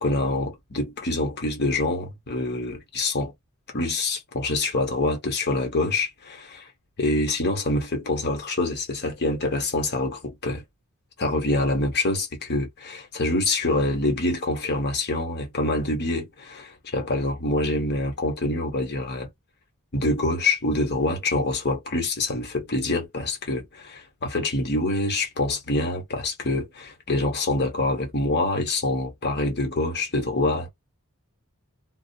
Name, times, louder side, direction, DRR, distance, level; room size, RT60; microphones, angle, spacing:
voice 1, 0.0-3.3 3.7-6.7 7.0-10.6 11.2-19.3 19.9-30.7, left 2 dB, 50° left, 0.9 m, -26 dB
2.4 x 2.0 x 2.5 m
head